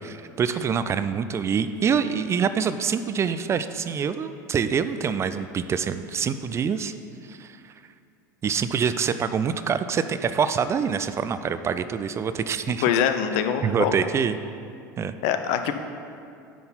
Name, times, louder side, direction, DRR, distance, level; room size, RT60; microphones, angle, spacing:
voice 1, 0.0-6.9 7.2-7.7 8.4-12.9 13.6-14.4 15.0-15.1, right 6 dB, 25° right, 12 dB, 0.3 m, -25 dB
voice 2, 12.8-13.9 15.2-15.7, left 8 dB, 60° left, 8 dB, 0.6 m, -23 dB
9.4 x 3.9 x 5.5 m, 2.4 s
hypercardioid pair, 80°, 10 cm